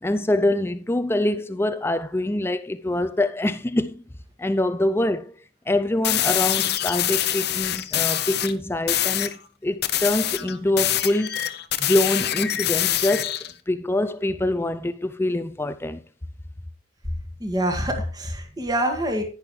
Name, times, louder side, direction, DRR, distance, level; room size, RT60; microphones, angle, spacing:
voice 1, 0.0-4.0 4.4-5.3 5.7-11.4 11.8-13.4 13.7-16.0, left 1 dB, 10° left, 0.4 m, -24 dB
sound 1, 6.0-8.5 8.9-9.3 9.8-13.5, left 12 dB, 55° left, 0.8 m, -24 dB
voice 2, 17.4-19.2, right 1 dB, 20° right, 1.9 m, -25 dB
11.0 x 10.5 x 3.2 m
head